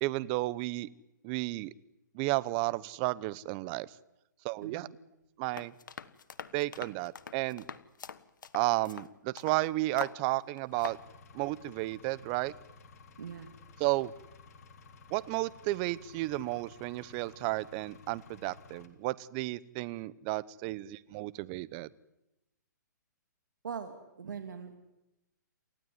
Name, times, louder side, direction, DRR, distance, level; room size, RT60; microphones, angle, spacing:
voice 1, 0.0-0.9 1.2-1.7 2.1-3.9 4.4-4.9 5.4-5.7 6.5-7.7 8.5-11.0 11.3-12.5 13.8-14.1 15.1-21.9, right 20 dB, 30° right, 19 dB, 0.9 m, -33 dB
voice 2, 4.6-5.0 13.2-13.5 23.6-24.8, right 6 dB, 80° right, 6 dB, 2.9 m, -41 dB
sound 1, 5.5-9.6 10.0-10.2 10.6-11.0, left 6 dB, 85° left, 1.3 m, -44 dB
Engine, 10.7-18.9, left 4 dB, 55° left, 3.6 m, -55 dB
28.5 x 15.5 x 9.5 m, 0.91 s
hypercardioid pair, 145°, 10 cm